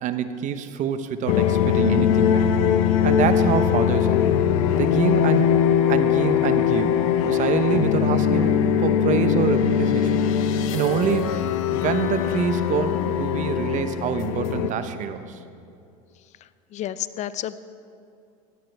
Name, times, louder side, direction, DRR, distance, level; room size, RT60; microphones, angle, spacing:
voice 1, 0.0-2.5 3.0-4.2 4.8-5.5 5.9-8.5 8.8-10.3 10.7-11.4 11.7-15.4, right 8 dB, 45° right, 10 dB, 0.9 m, -26 dB
sound 1, 1.3-14.7, left 8 dB, 75° left, 0.9 m, -21 dB
voice 2, 16.7-17.6, left 12 dB, 40° left, 15 dB, 0.6 m, -30 dB
17.5 x 13.5 x 3.5 m, 2.4 s
hypercardioid pair, 95°, 17 cm